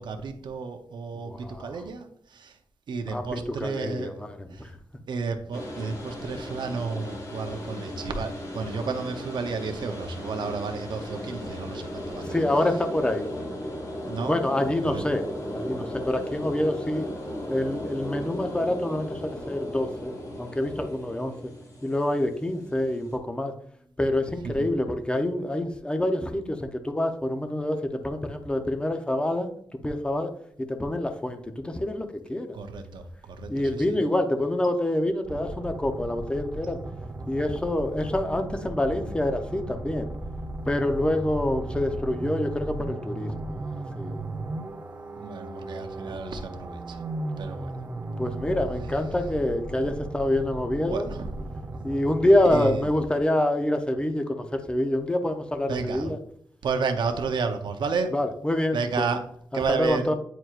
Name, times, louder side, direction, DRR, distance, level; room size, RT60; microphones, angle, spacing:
voice 1, 0.0-2.6 2.9-4.2 4.5-4.7 5.1-12.4 14.0-14.4 14.8-15.0 24.4-24.7 32.5-34.0 45.2-47.0 47.4-47.8 49.8-49.9 50.9-51.4 52.5-52.8 55.7-56.1 56.6-58.1 58.7-59.3 59.5-60.1, right 4 dB, 75° right, 6 dB, 0.7 m, -31 dB
voice 2, 1.3-1.7 3.1-4.7 12.3-13.3 14.3-17.1 17.5-21.3 21.8-23.5 24.0-29.5 29.8-30.3 30.6-32.6 33.5-36.8 37.3-40.1 40.7-44.2 48.2-51.1 51.8-56.2 58.1-59.1 59.7-60.1, left 1 dB, 15° left, 6 dB, 0.7 m, -26 dB
sound 1, 5.5-23.2, equal, 50° left, 1.8 m, -36 dB
sound 2, 35.2-53.3, right 2 dB, 30° right, 0.6 m, -36 dB
9.1 x 4.5 x 2.4 m, 0.63 s
wide cardioid pair, 145°, 8 cm